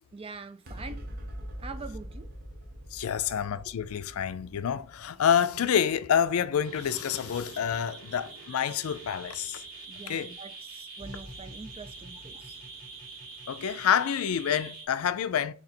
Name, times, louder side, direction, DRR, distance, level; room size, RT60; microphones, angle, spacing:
voice 1, 0.1-1.1 1.6-2.3 3.3-3.4 9.9-12.6, right 4 dB, 25° right, 0.4 m, -44 dB
sound 1, 0.7-7.3, equal, 45° right, 0.9 m, -44 dB
voice 2, 2.9-9.6 10.1-10.3 13.5-15.5, left 8 dB, 80° left, 0.4 m, -28 dB
sound 2, 6.6-14.9, right 3 dB, 65° right, 1.4 m, -45 dB
4.0 x 2.8 x 4.3 m
head